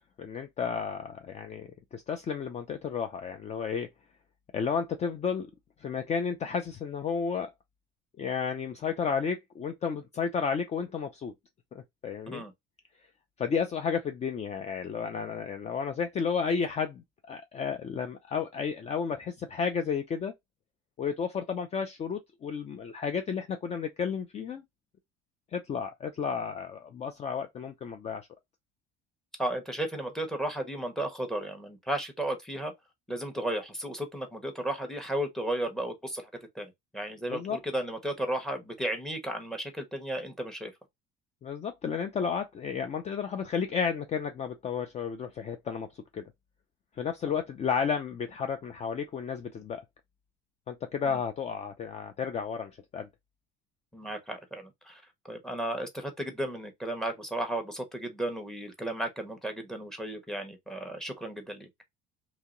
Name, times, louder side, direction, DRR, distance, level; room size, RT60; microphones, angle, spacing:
voice 1, 0.2-3.9 4.5-5.5 5.8-7.5 8.2-11.3 11.7-12.4 13.4-20.3 21.0-24.6 25.5-28.3 37.3-37.6 41.4-45.9 46.1-46.2 47.0-49.8 50.7-53.1, left 6 dB, 35° left, 0.5 m, -32 dB
voice 2, 29.4-32.7 33.1-36.2 36.5-40.7 51.1-51.2 53.9-61.7, right 1 dB, ahead, 1.1 m, -34 dB
3.0 x 2.8 x 3.7 m
cardioid pair, 120°, 21 cm